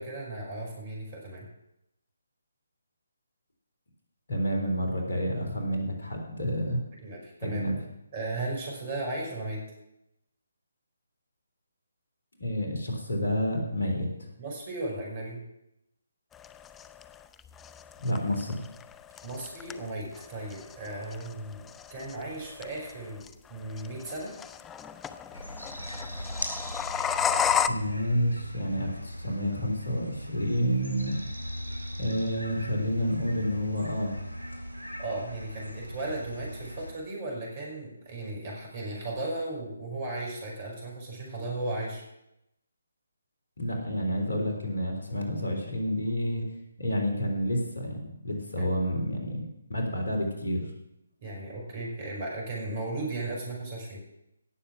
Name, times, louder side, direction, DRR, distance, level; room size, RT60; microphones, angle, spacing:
voice 1, 0.0-1.5 7.0-7.8 8.1-9.6 14.4-15.4 19.2-24.3 35.0-42.0 48.6-48.7 51.2-54.0, right 2 dB, 30° right, -1 dB, 5.4 m, -36 dB
voice 2, 4.3-6.8 7.4-7.8 12.4-14.1 18.0-18.6 27.7-31.2 32.0-34.2 43.6-46.4 46.8-50.7, equal, 60° left, 1 dB, 3.7 m, -29 dB
sound 1, 16.3-27.7, left 8 dB, 10° left, 0.4 m, -34 dB
sound 2, 25.3-36.9, equal, 85° left, 4.1 m, -39 dB
17.0 x 7.3 x 6.1 m, 0.83 s
figure-of-eight pair, 145°, 0 cm